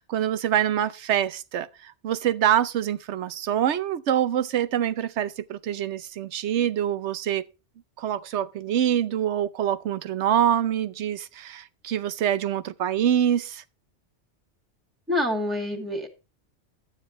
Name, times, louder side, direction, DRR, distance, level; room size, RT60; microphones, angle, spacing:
voice 1, 0.0-7.5 8.0-13.6, right 10 dB, 80° right, 1.0 m, -25 dB
voice 2, 15.1-16.1, left 1 dB, ahead, 2.0 m, -26 dB
12.5 x 9.1 x 3.1 m
omnidirectional pair, 1.2 m